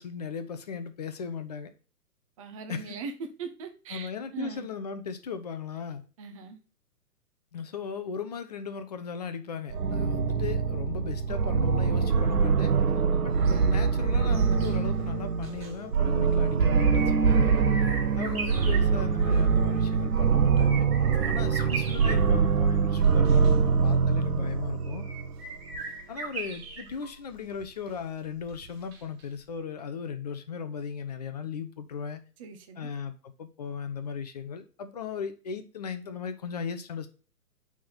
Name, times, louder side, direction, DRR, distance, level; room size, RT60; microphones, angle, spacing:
voice 1, 0.0-1.7 2.7-3.0 3.9-6.0 7.5-12.7 13.2-17.9 18.2-20.9 21.3-25.0 26.1-32.2 32.8-37.1, left 6 dB, 30° left, 0.6 m, -37 dB
voice 2, 2.4-4.7 6.2-6.6 12.9-13.3 21.2-21.5 23.8-24.2 32.4-32.9, right 5 dB, 25° right, 0.6 m, -41 dB
sound 1, 9.7-25.4, right 5 dB, 70° right, 0.8 m, -24 dB
sound 2, 13.3-29.2 29.5-29.6, right 4 dB, 40° right, 1.7 m, -41 dB
8.4 x 3.6 x 3.9 m
figure-of-eight pair, 125°, 45 cm